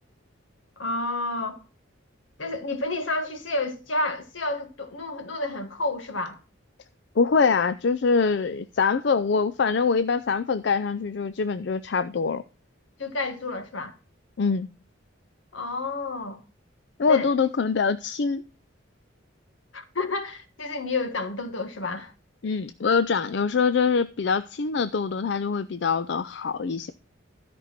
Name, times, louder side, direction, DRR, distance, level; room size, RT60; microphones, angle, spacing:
voice 1, 0.8-1.6 2.4-6.4 13.0-13.9 15.5-16.4 17.1-17.3 19.7-22.1, left 2 dB, 80° left, 1.6 m, -30 dB
voice 2, 7.2-12.4 14.4-14.7 17.0-18.4 22.4-26.9, left 5 dB, 60° left, 0.4 m, -24 dB
13.0 x 5.3 x 5.8 m
head